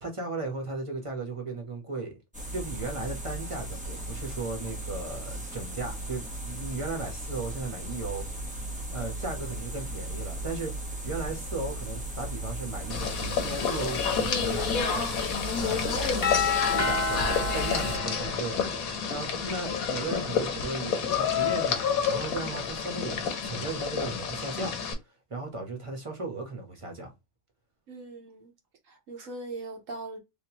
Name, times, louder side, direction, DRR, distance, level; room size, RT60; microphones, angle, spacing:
voice 1, 0.0-2.2 2.5-8.2 8.9-10.7 11.0-15.0 15.6-16.2 16.7-24.7 25.3-27.1, right 3 dB, 25° right, 1.1 m, -36 dB
sound 1, 2.3-18.0, right 1 dB, 5° right, 0.7 m, -37 dB
sound 2, 12.9-24.9, left 6 dB, 75° left, 1.3 m, -29 dB
voice 2, 15.8-16.4 27.9-28.5 28.9-30.2, right 3 dB, 65° right, 1.3 m, -41 dB
Doorbell, 16.2-19.0, left 5 dB, 35° left, 0.9 m, -29 dB
3.7 x 2.7 x 2.9 m
omnidirectional pair, 1.5 m